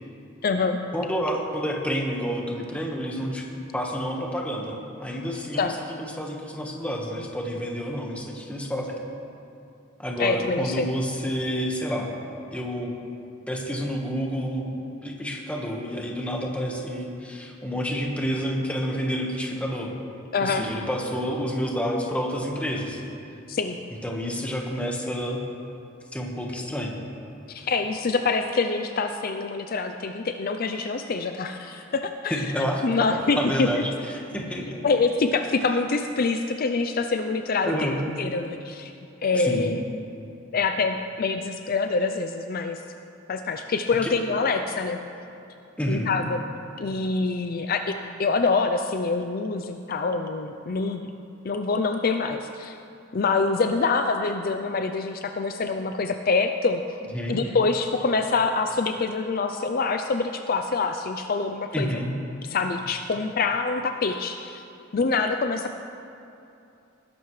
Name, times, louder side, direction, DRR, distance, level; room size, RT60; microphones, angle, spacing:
voice 1, 0.4-0.8 5.6-5.7 10.2-10.9 20.3-20.7 23.5-23.8 27.5-33.8 34.8-38.9 39.2-39.8 40.5-42.8 43.3-45.0 45.9-46.4 46.8-51.1 51.4-52.8 53.1-56.8 57.3-61.9 62.4-64.6 64.9-65.8, left 4 dB, 45° left, 7 dB, 0.4 m, -25 dB
voice 2, 0.9-3.5 3.7-8.9 10.0-12.1 12.5-12.9 13.5-19.9 20.4-23.0 24.0-25.4 26.1-27.0 32.3-32.8 33.4-34.8 37.6-38.1 39.3-39.7 44.0-44.1 45.8-46.1 57.1-57.4 61.7-62.1, equal, 5° left, 0 dB, 1.3 m, -29 dB
19.5 x 11.5 x 3.2 m, 2.7 s
head